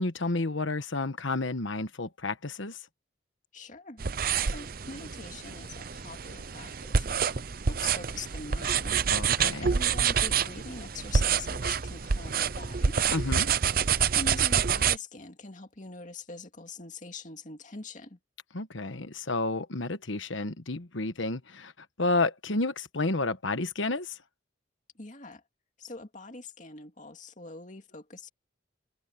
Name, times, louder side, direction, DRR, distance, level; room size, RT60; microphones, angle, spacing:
voice 1, 0.0-2.8 9.1-9.7 13.1-13.5 18.5-21.7 22.0-24.2, left 2 dB, 75° left, 1.3 m, -30 dB
voice 2, 3.5-4.0 4.4-9.0 9.6-13.0 14.2-18.2 24.9-25.4 25.8-28.3, left 3 dB, 40° left, 2.4 m, -43 dB
sound 1, 4.0-15.0, right 7 dB, 45° right, 0.7 m, -27 dB
head